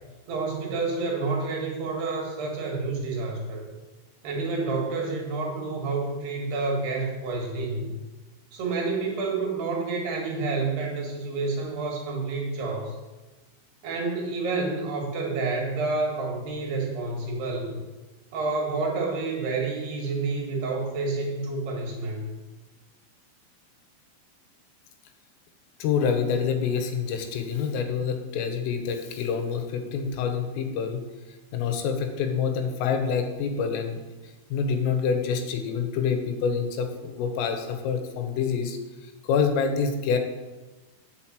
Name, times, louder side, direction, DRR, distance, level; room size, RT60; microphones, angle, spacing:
voice 1, 0.3-3.6 4.2-7.9 8.5-13.0 13.8-17.8 18.3-22.2, right 3 dB, 65° right, -1 dB, 3.2 m, -29 dB
voice 2, 25.8-31.0 31.5-34.0 34.5-38.8 39.3-40.2, left 6 dB, 90° left, 6 dB, 3.7 m, -26 dB
9.1 x 6.6 x 7.5 m, 1.2 s
omnidirectional pair, 5.8 m